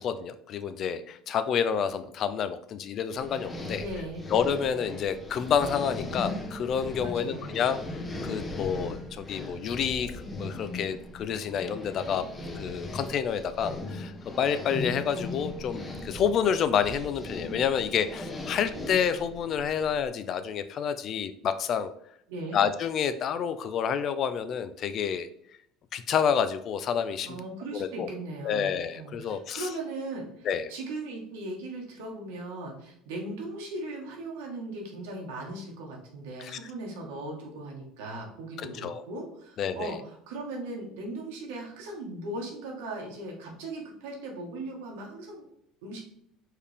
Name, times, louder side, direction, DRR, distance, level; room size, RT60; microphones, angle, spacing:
voice 1, 0.0-3.8 4.3-12.3 12.6-21.9 22.5-25.3 25.9-27.4 27.7-28.1 28.4-29.7 30.4-30.7 36.4-36.6 38.6-39.0 39.6-39.9, left 7 dB, 50° left, 11 dB, 0.4 m, -29 dB
sound 1, 3.1-20.1, left 2 dB, 20° left, 0.8 m, -38 dB
voice 2, 3.7-4.3 7.0-7.6 22.3-22.6 27.2-45.4 45.8-46.0, right 2 dB, 90° right, 0 dB, 1.4 m, -38 dB
4.5 x 3.5 x 3.4 m, 0.70 s
supercardioid pair, 115°, 0 cm